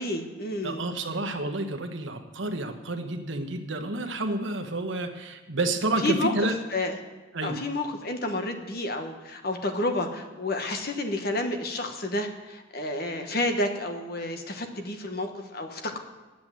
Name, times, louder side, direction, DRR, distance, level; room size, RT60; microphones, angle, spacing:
voice 1, 0.0-0.8 6.0-6.3 6.7-7.0 7.4-16.0, left 1 dB, 50° left, 5 dB, 1.2 m, -30 dB
voice 2, 0.6-6.6 7.3-7.6, right 2 dB, 70° right, 6 dB, 1.2 m, -30 dB
9.7 x 8.2 x 9.1 m, 1.2 s
head